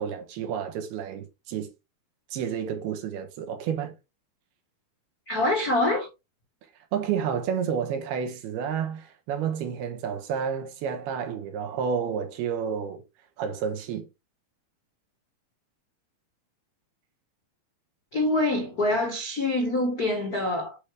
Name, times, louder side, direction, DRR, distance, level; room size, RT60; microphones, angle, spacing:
voice 1, 0.0-1.7 2.3-3.9 6.9-13.0 13.4-14.1, right 7 dB, 80° right, 3.4 m, -30 dB
voice 2, 5.3-6.1 18.1-20.8, left 2 dB, 85° left, 0.8 m, -25 dB
8.4 x 4.9 x 3.4 m
omnidirectional pair, 4.4 m